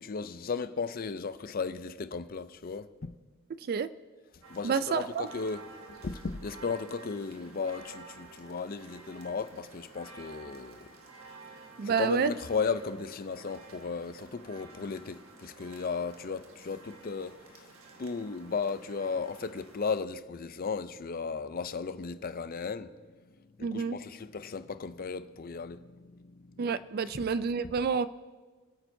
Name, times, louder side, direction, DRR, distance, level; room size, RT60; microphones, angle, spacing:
voice 1, 0.0-3.1 4.5-10.9 11.8-17.7 18.0-23.0 23.4-26.6, left 5 dB, 45° left, 0.5 m, -35 dB
sound 1, 4.4-20.0, right 3 dB, 70° right, 1.6 m, -52 dB
voice 2, 4.6-5.3 11.8-12.3 23.6-24.0 26.6-28.1, right 6 dB, 45° right, 0.3 m, -29 dB
26.5 x 8.9 x 2.7 m
head